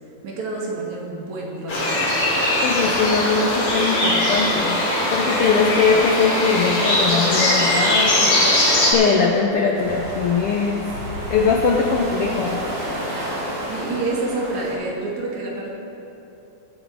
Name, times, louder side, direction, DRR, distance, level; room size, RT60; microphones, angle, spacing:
voice 1, 0.2-2.0 13.7-15.7, right 2 dB, 65° right, -2 dB, 3.3 m, -28 dB
sound 1, 1.7-8.9, left 1 dB, 60° left, 4.4 m, -20 dB
voice 2, 2.6-4.8 5.1-10.8 11.3-12.6, left 5 dB, 85° left, 1 dB, 1.2 m, -21 dB
sound 2, 9.7-14.7, equal, 45° right, 4.4 m, -30 dB
18.5 x 9.1 x 4.8 m, 3.0 s
omnidirectional pair, 3.6 m